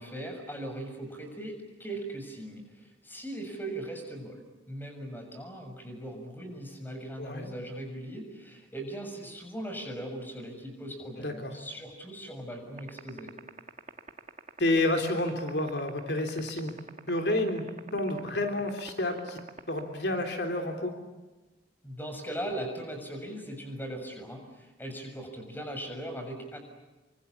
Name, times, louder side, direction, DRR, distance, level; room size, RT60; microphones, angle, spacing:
voice 1, 0.0-4.4 4.7-13.3 21.8-26.6, right 1 dB, 10° left, 4 dB, 6.7 m, -39 dB
voice 2, 7.2-7.5 11.2-11.5 14.6-16.8 17.1-17.6 17.9-19.4 19.7-20.9, left 1 dB, 70° left, 5 dB, 3.4 m, -29 dB
sound 1, 12.8-20.3, right 4 dB, 40° right, 1.6 m, -41 dB
28.5 x 25.0 x 8.4 m, 1.2 s
head